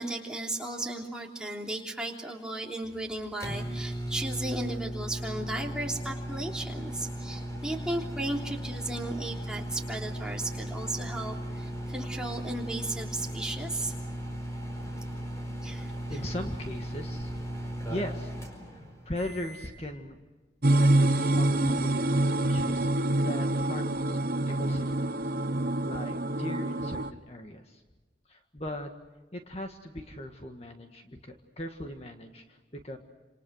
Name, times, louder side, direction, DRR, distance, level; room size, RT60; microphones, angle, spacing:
voice 1, 0.0-14.0 15.6-15.9, right 1 dB, 5° right, -1 dB, 3.2 m, -35 dB
sound 1, 2.8-19.8, equal, 15° left, 4.6 m, -37 dB
voice 2, 15.8-18.4 18.6-20.2 20.7-24.2 24.5-25.3 25.8-27.8 28.3-28.9 29.3-33.0, left 1 dB, 35° left, 4 dB, 1.7 m, -39 dB
sound 2, 20.6-27.1, right 1 dB, 50° right, 1.1 m, -26 dB
29.0 x 27.5 x 6.4 m, 1.3 s
head